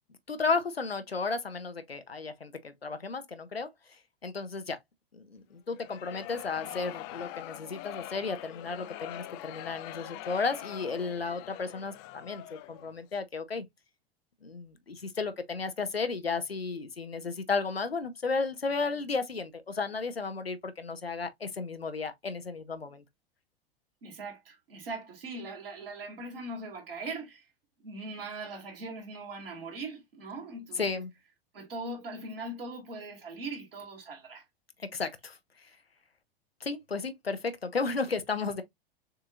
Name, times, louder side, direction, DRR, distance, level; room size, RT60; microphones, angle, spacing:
voice 1, 0.3-3.7 4.2-4.8 5.1-13.7 14.4-23.0 30.8-31.1 34.9-35.4 36.6-38.6, left 4 dB, 85° left, 0.7 m, -33 dB
sound 1, 5.7-13.0, left 15 dB, 30° left, 0.4 m, -43 dB
voice 2, 24.0-27.4 27.8-31.0 31.5-34.4, right 2 dB, 70° right, 2.2 m, -40 dB
6.5 x 2.7 x 2.4 m
figure-of-eight pair, 90°, 30 cm